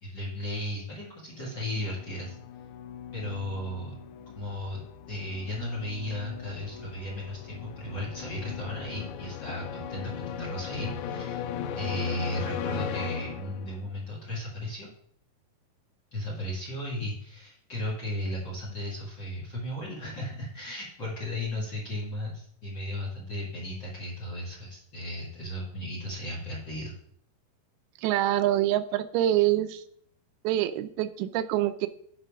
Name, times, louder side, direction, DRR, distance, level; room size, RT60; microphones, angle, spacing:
voice 1, 0.0-2.4 3.1-4.0 4.3-4.8 5.1-11.4 11.8-14.9 16.1-26.9, left 1 dB, 40° left, -3 dB, 1.8 m, -35 dB
sound 1, 1.3-14.0, left 8 dB, 85° left, 1.9 m, -38 dB
voice 2, 28.0-29.8 30.4-31.9, right 13 dB, 85° right, 11 dB, 2.5 m, -25 dB
9.9 x 4.6 x 5.1 m, 0.64 s
omnidirectional pair, 4.4 m